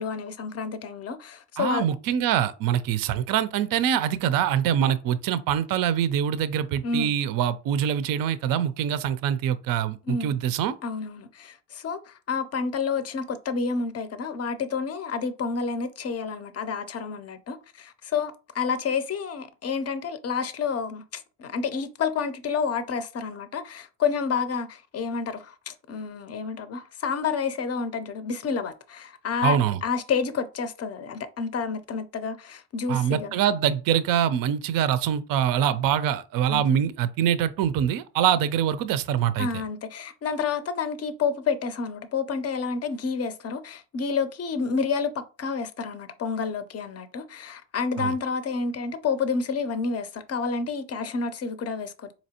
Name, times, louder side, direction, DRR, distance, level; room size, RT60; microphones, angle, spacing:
voice 1, 0.0-1.9 6.8-7.1 10.1-10.3 10.8-33.3 36.5-36.7 39.4-52.1, left 5 dB, 35° left, 0.6 m, -29 dB
voice 2, 1.6-10.7 29.4-29.8 32.9-39.5 48.0-48.1, right 9 dB, 50° right, 0.5 m, -24 dB
4.1 x 2.9 x 2.8 m
cardioid pair, 95°, 45 cm